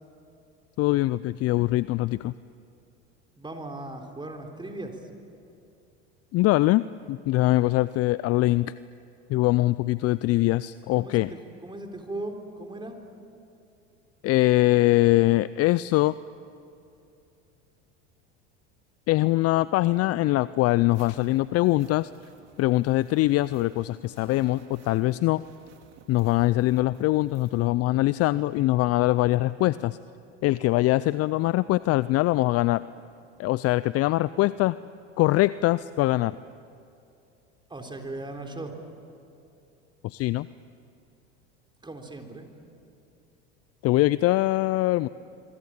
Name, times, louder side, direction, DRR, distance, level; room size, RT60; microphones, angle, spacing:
voice 1, 0.8-2.3 6.3-8.7 9.3-11.3 14.2-16.2 19.1-22.1 22.6-25.4 26.1-30.0 30.4-32.8 33.4-34.8 35.2-36.3 40.0-40.5 43.8-45.1, left 17 dB, 45° left, 17 dB, 0.5 m, -23 dB
voice 2, 3.4-5.1 10.9-13.0 37.7-38.7 41.8-42.5, right 2 dB, 15° right, 3 dB, 3.7 m, -38 dB
sound 1, 20.9-27.7, right 6 dB, 50° right, 3.2 m, -55 dB
25.5 x 24.5 x 8.8 m, 2.7 s
hypercardioid pair, 85°, 34 cm